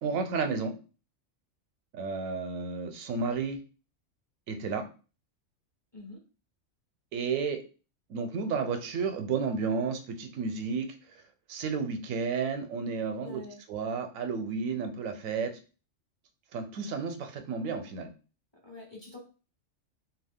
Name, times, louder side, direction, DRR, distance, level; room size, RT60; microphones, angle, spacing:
voice 1, 0.0-0.7 1.9-3.6 4.5-4.8 7.1-7.6 8.1-10.9 11.5-13.4 13.7-15.5 16.5-18.1, right 5 dB, 85° right, 6 dB, 1.0 m, -32 dB
voice 2, 5.9-6.2 13.2-13.6 18.5-19.2, left 2 dB, 25° left, -2 dB, 0.7 m, -45 dB
2.7 x 2.3 x 3.5 m, 0.34 s
omnidirectional pair, 1.4 m